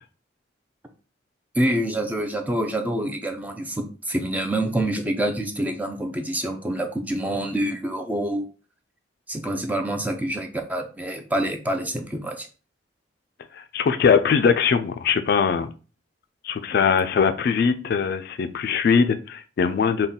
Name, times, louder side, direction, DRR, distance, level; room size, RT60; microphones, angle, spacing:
voice 1, 1.5-8.5 9.3-12.5, right 1 dB, 10° right, 5 dB, 0.4 m, -26 dB
voice 2, 13.5-15.7 16.4-20.1, left 6 dB, 55° left, 9 dB, 0.3 m, -21 dB
4.0 x 2.2 x 3.5 m, 0.36 s
head